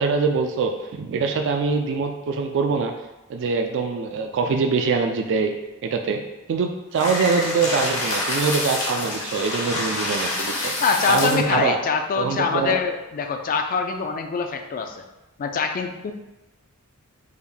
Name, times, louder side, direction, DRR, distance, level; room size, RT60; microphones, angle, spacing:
voice 1, 0.0-2.9 3.3-5.5 5.8-6.2 6.5-10.7 11.1-11.8 12.2-12.8, right 4 dB, 55° right, 4 dB, 0.3 m, -23 dB
sound 1, 6.9-11.5, left 1 dB, 70° left, 1.0 m, -27 dB
voice 2, 10.8-15.0 15.4-16.1, left 5 dB, 40° left, 6 dB, 0.3 m, -24 dB
3.6 x 2.5 x 3.4 m, 1.0 s
head